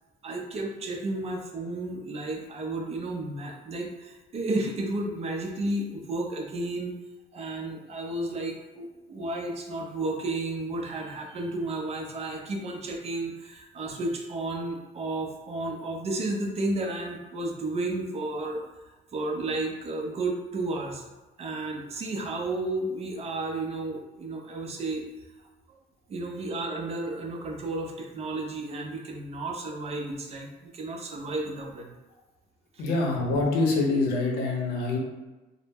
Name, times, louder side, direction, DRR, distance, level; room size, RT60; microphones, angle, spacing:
voice 1, 0.2-7.0 7.3-18.6 19.1-21.0 21.4-25.0 25.7-25.8 26.1-31.9 32.7-32.8, right 2 dB, 40° right, 1 dB, 0.4 m, -32 dB
voice 2, 32.8-35.0, left 3 dB, 85° left, 0 dB, 0.6 m, -25 dB
2.0 x 2.0 x 3.3 m, 1.1 s
cardioid pair, 110°, 17 cm